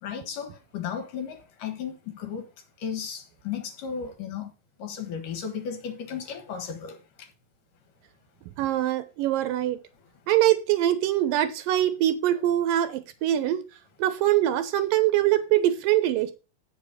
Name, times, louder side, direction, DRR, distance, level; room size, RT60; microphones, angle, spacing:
voice 1, 0.0-2.4 2.8-4.5 4.8-7.0, left 7 dB, 70° left, 3.1 m, -34 dB
voice 2, 8.6-9.8 10.3-13.6 14.0-16.3, right 13 dB, 85° right, 2.7 m, -23 dB
8.3 x 6.8 x 5.1 m
omnidirectional pair, 3.9 m